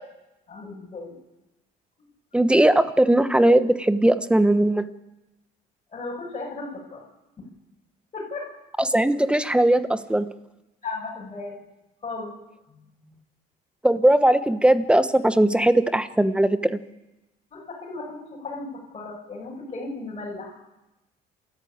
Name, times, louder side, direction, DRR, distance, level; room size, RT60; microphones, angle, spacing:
voice 1, 0.5-1.1 2.0-2.1 5.9-7.0 7.4-7.5 8.1-8.5 10.8-11.6 12.0-12.4 12.7-12.9 17.5-20.6, left 3 dB, 35° left, -5 dB, 6.3 m, -36 dB
voice 2, 2.3-4.9 8.8-10.3 13.8-16.7, right 1 dB, 5° right, 11 dB, 1.1 m, -19 dB
28.0 x 14.0 x 8.9 m, 1.0 s
cardioid pair, 110°, 17 cm